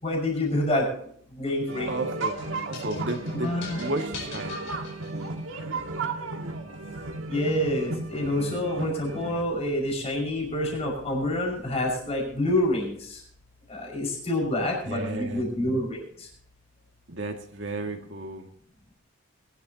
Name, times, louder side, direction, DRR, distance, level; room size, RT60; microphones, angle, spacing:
voice 1, 0.0-1.9 3.3-3.8 7.3-13.2 13.7-16.3, left 1 dB, 30° left, 0 dB, 5.8 m, -27 dB
sound 1, 1.7-9.4, right 3 dB, 80° right, 1.8 m, -34 dB
voice 2, 1.9-2.4 2.7-3.5 3.8-4.6 14.9-15.5 17.1-18.4, right 2 dB, 65° right, 4 dB, 2.1 m, -33 dB
sound 2, 2.2-5.6, left 4 dB, 65° left, 5.1 m, -42 dB
22.5 x 11.5 x 2.9 m, 0.63 s
head